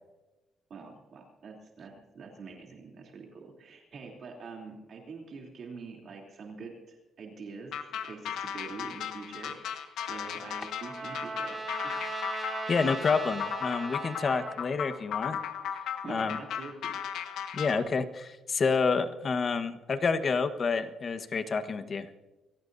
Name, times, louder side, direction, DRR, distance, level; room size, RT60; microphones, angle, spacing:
voice 1, 0.7-11.9 16.0-17.0, right 4 dB, 55° right, 0 dB, 3.2 m, -45 dB
sound 1, 7.7-17.8, left 8 dB, 85° left, 1.4 m, -36 dB
Trumpet, 10.0-14.7, right 3 dB, 25° right, 5.1 m, -39 dB
voice 2, 12.7-15.4 16.1-16.4 17.5-22.1, left 5 dB, 45° left, 9 dB, 1.3 m, -29 dB
23.5 x 16.5 x 2.7 m, 1.1 s
cardioid pair, 90°, 0 cm